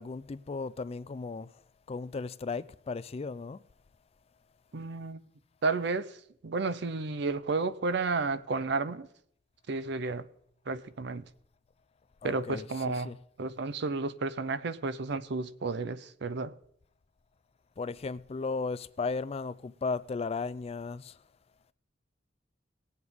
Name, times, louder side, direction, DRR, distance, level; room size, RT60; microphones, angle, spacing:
voice 1, 0.0-1.5 1.9-3.6 12.2-13.2 17.8-21.2, left 4 dB, 35° left, 0.4 m, -35 dB
voice 2, 4.7-5.2 5.6-6.2 6.4-9.1 9.7-10.3 10.7-11.2 12.2-13.1 13.4-16.5, right 3 dB, 65° right, 0.6 m, -32 dB
18.5 x 8.0 x 3.6 m
head